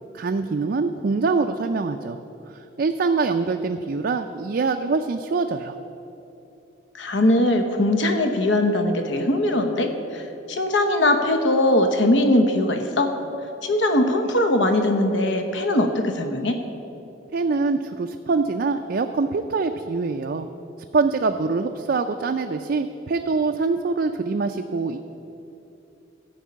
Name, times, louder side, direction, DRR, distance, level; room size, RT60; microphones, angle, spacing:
voice 1, 0.1-2.2 2.5-5.8 17.3-20.5 20.9-25.0, right 4 dB, 55° right, 5 dB, 0.4 m, -24 dB
voice 2, 6.9-13.1 13.6-16.5, left 1 dB, 75° left, 6 dB, 0.9 m, -21 dB
13.5 x 5.4 x 8.4 m, 2.9 s
head